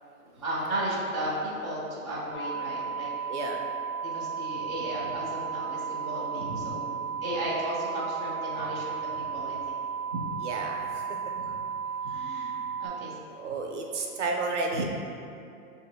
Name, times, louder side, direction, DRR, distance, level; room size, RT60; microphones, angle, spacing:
voice 1, 0.4-3.1 4.0-9.7 10.1-10.2 11.3-11.6 12.0-13.2, right 1 dB, 20° left, -12 dB, 0.4 m, -35 dB
sound 1, 2.3-12.9, right 6 dB, 50° left, 1.4 m, -34 dB
voice 2, 3.3-3.7 10.4-11.1 13.4-14.8, right 3 dB, 55° right, 1 dB, 0.5 m, -32 dB
6.2 x 2.4 x 2.6 m, 2.6 s
hypercardioid pair, 175°, 44 cm